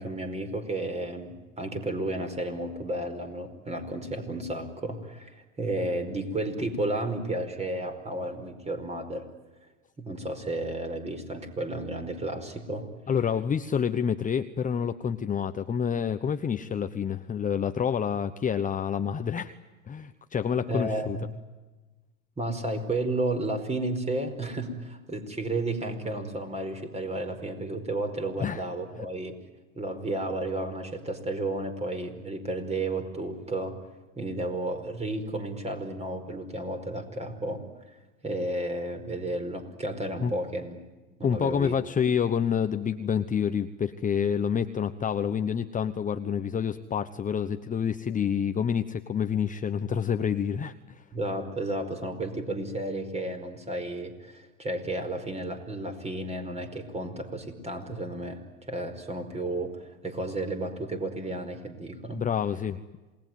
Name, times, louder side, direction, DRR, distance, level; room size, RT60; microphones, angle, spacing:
voice 1, 0.0-9.3 10.0-12.9 20.7-21.2 22.4-29.4 29.7-33.7 34.1-37.6 38.2-40.8 41.2-41.8 51.1-62.2, right 1 dB, 15° right, 7 dB, 5.0 m, -32 dB
voice 2, 13.1-19.5 19.9-21.2 28.4-28.6 40.2-40.3 41.2-51.0 62.1-62.8, left 7 dB, 20° left, 9 dB, 1.1 m, -28 dB
27.5 x 19.5 x 9.4 m, 1.2 s
hypercardioid pair, 105°, 38 cm